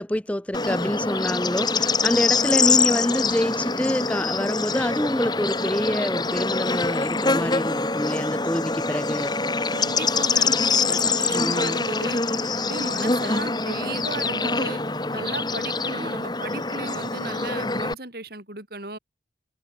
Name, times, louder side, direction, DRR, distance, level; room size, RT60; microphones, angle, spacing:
voice 1, 0.0-9.4 11.4-11.8 16.0-16.1, left 1 dB, 5° left, 0.5 m, -26 dB
Bird / Insect, 0.5-17.9, left 4 dB, 25° left, 2.4 m, -24 dB
voice 2, 9.7-12.2 12.6-14.8 15.1-19.0, right 2 dB, 55° right, 5.3 m, -35 dB
head